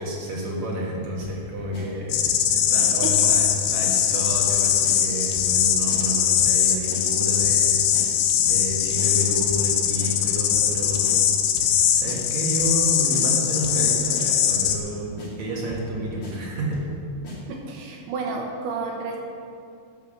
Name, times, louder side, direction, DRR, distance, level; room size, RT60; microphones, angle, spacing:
voice 1, 0.0-11.3 11.6-16.8, equal, 60° right, -3 dB, 2.0 m, -30 dB
sound 1, 1.2-1.4 1.7-1.9 2.2-2.5 2.8-2.9 3.3-3.5 3.8-3.9 4.3-4.5 4.8-5.0 5.3-5.6 5.9-6.0 6.4-6.6 6.9-7.0 7.4-7.6 7.9-8.1 8.4-8.7 9.0-9.1 9.5-9.7 10.0-10.1 10.5-10.7 11.0-11.2 11.6-11.8 12.1-12.2 12.6-12.8 13.1-13.2 13.6-13.8 14.1-14.3 14.7-14.9 15.2-15.3 15.7-15.9 16.2-16.3 16.7-16.9 17.2-17.4, left 2 dB, 35° left, 2.7 m, -38 dB
sound 2, 2.1-14.8, left 9 dB, 85° left, 3.3 m, -21 dB
voice 2, 17.5-19.2, right 4 dB, 75° right, 0 dB, 2.4 m, -31 dB
11.5 x 7.2 x 7.4 m, 2.4 s
omnidirectional pair, 5.6 m